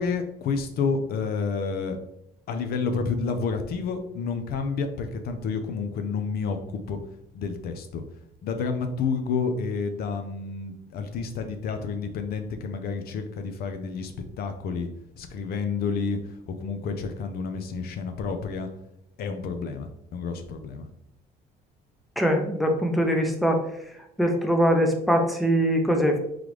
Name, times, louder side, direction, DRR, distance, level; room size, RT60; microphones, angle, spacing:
voice 1, 0.0-2.0 2.5-7.0 7.3-8.0 8.4-14.9 15.2-18.7 19.2-20.9, left 5 dB, 65° left, 7 dB, 0.6 m, -30 dB
voice 2, 22.2-23.6 24.2-26.2, equal, ahead, 3 dB, 0.6 m, -22 dB
3.8 x 3.2 x 3.1 m, 0.78 s
cardioid pair, 110°, 17 cm